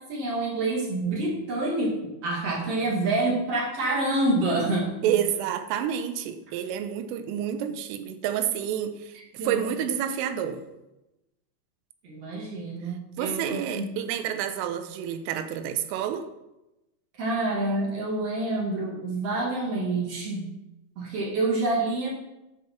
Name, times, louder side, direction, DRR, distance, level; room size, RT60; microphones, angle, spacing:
voice 1, 0.1-5.1 9.4-9.6 12.0-13.8 17.2-20.5 21.0-22.1, right 2 dB, 50° right, -3 dB, 2.0 m, -27 dB
voice 2, 5.0-10.6 13.2-16.3, right 9 dB, 90° right, 9 dB, 3.4 m, -29 dB
10.5 x 5.6 x 5.9 m, 0.96 s
omnidirectional pair, 5.6 m